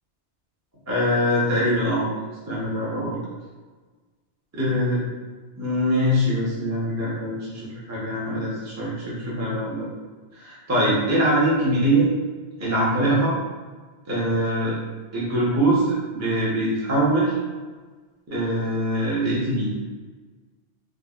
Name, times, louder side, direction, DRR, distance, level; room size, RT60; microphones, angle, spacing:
voice 1, 0.9-2.1 2.5-3.2 4.5-5.0 5.6-9.9 10.3-12.1 12.6-13.3 14.1-14.8 15.1-17.4 18.3-19.7, equal, 15° right, -8 dB, 0.8 m, -23 dB
4.8 x 2.3 x 2.4 m, 1.4 s
omnidirectional pair, 1.2 m